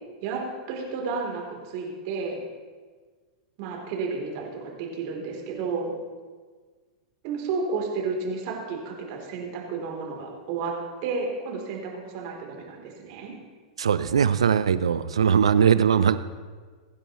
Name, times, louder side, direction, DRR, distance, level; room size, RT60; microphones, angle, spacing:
voice 1, 0.2-2.5 3.6-5.9 7.2-10.8 11.0-13.3, right 4 dB, 55° right, 0 dB, 3.6 m, -32 dB
voice 2, 13.8-16.2, right 7 dB, 80° right, 14 dB, 0.6 m, -20 dB
23.5 x 10.0 x 3.2 m, 1.5 s
hypercardioid pair, 100°, 3 cm